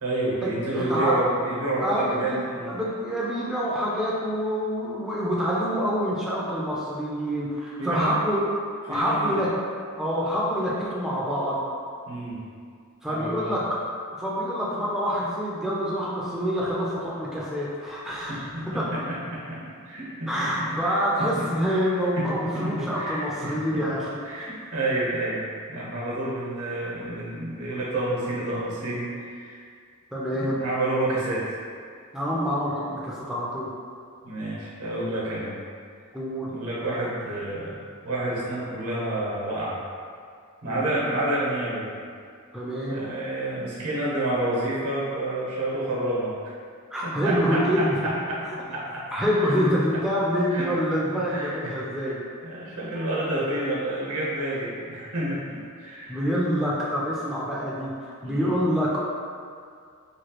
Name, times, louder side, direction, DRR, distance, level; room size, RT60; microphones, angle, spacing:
voice 1, 0.0-2.7 7.8-8.2 8.9-9.3 12.1-12.4 13.1-13.5 18.0-21.9 22.2-22.3 22.5-23.8 24.2-25.4 25.7-29.6 30.3-31.5 34.2-35.6 36.5-39.8 40.6-41.9 42.9-46.5 47.0-49.1 49.4-49.6 49.9-50.0 50.5-51.0 51.3-56.2 58.2-58.5, right 1 dB, 75° right, -6 dB, 0.9 m, -29 dB
voice 2, 0.7-1.1 1.8-2.4 2.7-8.5 8.9-9.5 10.0-11.6 13.0-13.8 14.2-18.8 20.3-24.1 24.3-24.5 30.1-30.6 32.1-33.7 36.1-36.5 40.6-41.0 42.5-43.1 46.9-48.0 49.1-52.2 56.1-59.0, equal, ahead, -7 dB, 0.3 m, -26 dB
3.0 x 2.3 x 2.9 m, 2.2 s
head